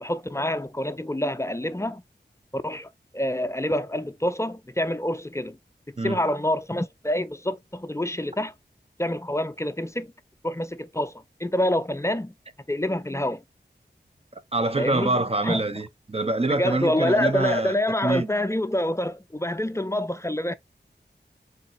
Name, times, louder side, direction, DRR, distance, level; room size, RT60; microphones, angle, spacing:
voice 1, 0.0-2.0 2.5-5.6 6.0-8.5 9.0-10.1 10.4-12.3 12.7-13.4 14.8-15.2 15.4-15.6 16.5-20.5, left 1 dB, 15° left, 0.4 m, -27 dB
voice 2, 14.5-18.3, right 2 dB, 35° right, 0.6 m, -25 dB
4.1 x 3.9 x 2.5 m
wide cardioid pair, 65°, 19 cm